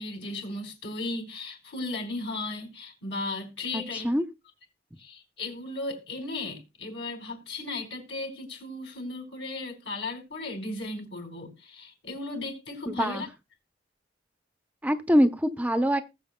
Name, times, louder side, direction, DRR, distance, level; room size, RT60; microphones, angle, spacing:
voice 1, 0.0-4.1 5.0-13.3, left 2 dB, 75° left, 4.5 m, -36 dB
voice 2, 3.7-4.2 12.9-13.2 14.8-16.0, equal, 10° right, 0.6 m, -24 dB
19.5 x 7.7 x 2.2 m
head